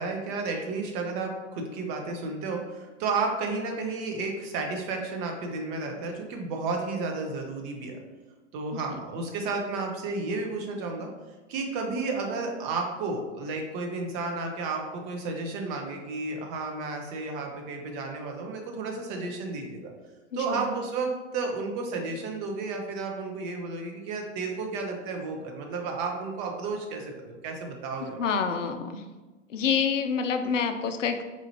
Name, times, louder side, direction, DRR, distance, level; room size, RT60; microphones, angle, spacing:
voice 1, 0.0-8.0 8.5-11.1 11.5-19.9 20.3-28.3, right 3 dB, 30° right, 2 dB, 0.6 m, -32 dB
voice 2, 28.0-29.0 29.5-31.2, left 6 dB, 75° left, 7 dB, 0.5 m, -27 dB
4.2 x 2.4 x 2.8 m, 1.2 s
figure-of-eight pair, 100°, 38 cm